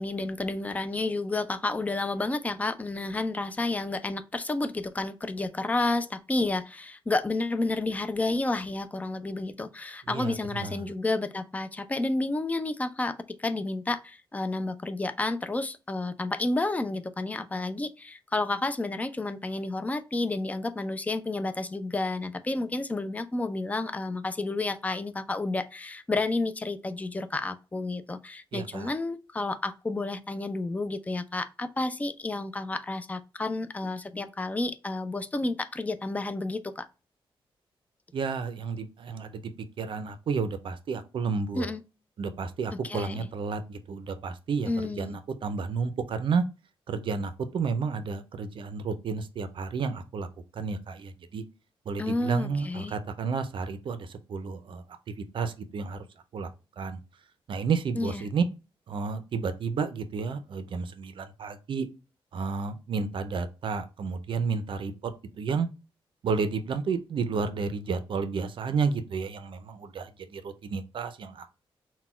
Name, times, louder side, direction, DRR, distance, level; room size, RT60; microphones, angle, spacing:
voice 1, 0.0-36.9 41.5-41.8 42.8-43.3 44.7-45.2 52.0-53.0 57.9-58.3, left 2 dB, 15° left, 0.3 m, -31 dB
voice 2, 28.5-28.9 38.1-39.5 39.8-41.7 42.2-44.7 45.0-46.4 46.9-50.3 50.5-51.4 51.9-54.8 55.3-56.0 56.3-56.5 56.8-57.0 57.5-58.4 58.9-61.9 62.3-65.1 65.4-65.7 66.2-71.5, right 5 dB, 60° right, 0.4 m, -31 dB
4.0 x 2.1 x 4.2 m
wide cardioid pair, 140°, 10 cm